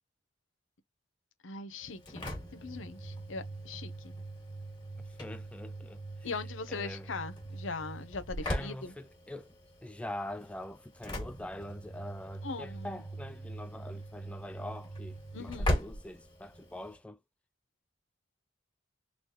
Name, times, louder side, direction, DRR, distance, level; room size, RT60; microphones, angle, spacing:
voice 1, 1.4-4.1 6.2-8.9 12.4-13.0 15.3-15.8, left 4 dB, 75° left, 0.8 m, -41 dB
Engine / Slam, 1.8-17.0, equal, 25° left, 2.0 m, -40 dB
voice 2, 5.0-6.0 6.7-7.1 8.5-9.6 9.8-17.2, left 1 dB, 5° left, 0.3 m, -44 dB
4.0 x 3.3 x 2.9 m
head